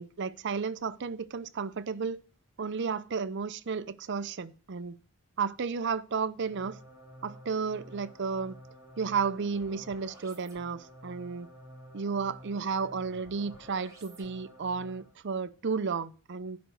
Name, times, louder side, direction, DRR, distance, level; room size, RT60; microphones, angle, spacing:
voice 1, 0.0-2.2 2.6-5.0 5.4-6.8 7.2-8.6 9.0-11.5 11.9-16.6, right 5 dB, 55° right, 0.6 m, -33 dB
sound 1, 6.4-15.2, right 1 dB, 15° right, 3.1 m, -51 dB
11.0 x 5.2 x 6.3 m
head